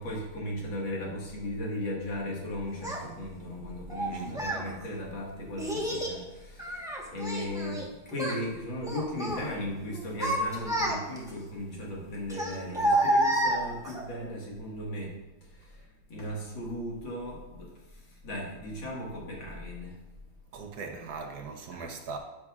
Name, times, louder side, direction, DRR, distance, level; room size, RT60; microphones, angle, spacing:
voice 1, 0.0-15.8 16.1-20.0 21.7-21.9, left 1 dB, 90° left, 2.5 m, -37 dB
Child speech kid speaking, 2.8-3.0 3.9-4.6 5.6-6.2 6.6-7.9 8.1-8.4 8.8-9.4 9.9-11.3 12.3-14.0, right 1 dB, 5° right, 0.8 m, -29 dB
voice 2, 4.1-4.5 20.5-22.2, right 5 dB, 65° right, 1.3 m, -39 dB
11.0 x 7.5 x 2.4 m
omnidirectional pair, 2.0 m